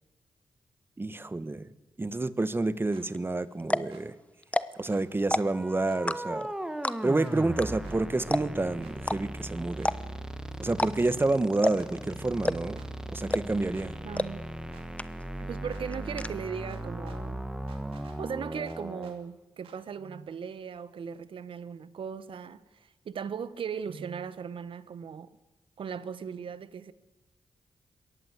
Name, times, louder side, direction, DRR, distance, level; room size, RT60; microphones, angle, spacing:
voice 1, 1.0-1.6 2.0-4.1 4.8-6.5 7.0-9.9 10.6-12.8 13.1-13.9, right 2 dB, 25° right, 1.2 m, -29 dB
sound 1, 2.9-3.1 3.9-4.0 4.9-5.0 5.9-6.0 6.9-7.4 7.8-8.0 8.8-9.0 9.8-9.9 10.8-10.9 11.8-11.9 12.8-12.9 13.7-13.9 14.7-14.9 15.7-15.8 16.7-17.2 17.7-18.2 18.7-19.2 19.6-19.8, right 7 dB, 90° right, 2.8 m, -55 dB
sound 2, 3.1-3.2 3.6-3.9 4.4-4.9 5.2-5.6 6.1-6.5 6.8-7.2 7.6-7.7 7.9-8.0 8.3-8.6 9.0-9.2 9.8-10.2 10.7-11.2 11.6-11.9 12.4-12.8 13.3-13.6 14.2-14.3 14.6-14.7 15.0-15.4 15.7-16.3, left 1 dB, 15° left, 1.0 m, -28 dB
sound 3, 5.2-19.1, right 1 dB, 5° right, 1.6 m, -38 dB
voice 2, 14.0-14.4 15.4-17.4 18.2-25.3 25.8-26.9, right 7 dB, 70° right, 1.2 m, -38 dB
21.5 x 17.5 x 8.2 m
cardioid pair, 65°, 9 cm